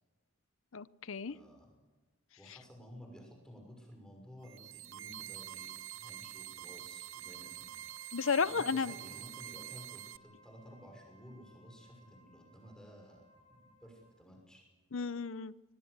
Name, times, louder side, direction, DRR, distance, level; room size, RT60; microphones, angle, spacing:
voice 1, 0.7-1.3 8.1-8.9 14.9-15.5, left 5 dB, 70° left, 17 dB, 0.7 m, -33 dB
voice 2, 1.3-1.7 2.4-7.8 8.4-14.6, equal, 5° left, 1 dB, 6.1 m, -54 dB
sound 1, 4.4-10.2, right 12 dB, 70° right, 0.8 m, -46 dB
Wind instrument woodwind instrument, 6.9-14.3, right 1 dB, 30° left, 5.9 m, -63 dB
25.0 x 19.5 x 8.1 m, 1.2 s
head